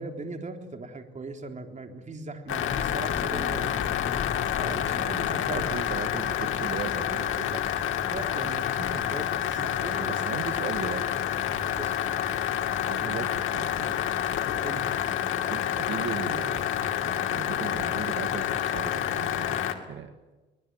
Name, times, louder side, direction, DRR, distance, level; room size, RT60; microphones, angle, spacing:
voice 1, 0.0-3.8 4.6-5.6 8.0-9.3 9.6-10.1 11.8-11.9 14.6-14.8, right 3 dB, 35° right, 5 dB, 3.7 m, -38 dB
sound 1, 2.5-19.7, left 10 dB, 85° left, 2.6 m, -28 dB
sound 2, 2.7-15.3, left 5 dB, 40° left, 2.3 m, -43 dB
voice 2, 4.7-5.1 5.5-7.7 9.5-9.6 10.1-11.0 12.9-13.9 15.3-16.7 17.0-20.3, right 8 dB, 70° right, 7 dB, 1.9 m, -37 dB
24.0 x 20.5 x 9.2 m, 1.2 s
cardioid pair, 90°, 20 cm